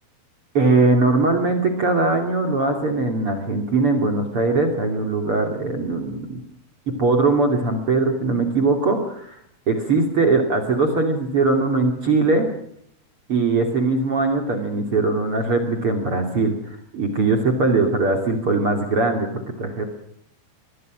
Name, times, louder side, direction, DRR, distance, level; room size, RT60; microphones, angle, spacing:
voice 1, 0.5-6.4 6.9-9.4 9.7-12.5 13.3-19.8, right 3 dB, 40° right, 4 dB, 3.3 m, -21 dB
24.5 x 22.0 x 6.3 m, 0.69 s
omnidirectional pair, 4.3 m